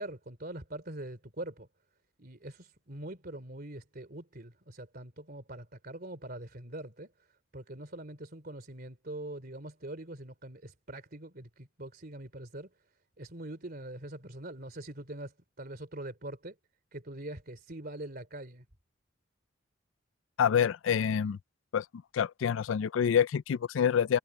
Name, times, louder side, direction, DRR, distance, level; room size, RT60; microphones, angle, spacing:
voice 1, 0.0-1.7 2.2-7.1 7.5-12.7 13.2-16.5 16.9-18.6, right 1 dB, 50° right, 3.3 m, -43 dB
voice 2, 20.4-21.4 21.7-21.9 22.1-24.2, left 8 dB, 80° left, 0.4 m, -27 dB
head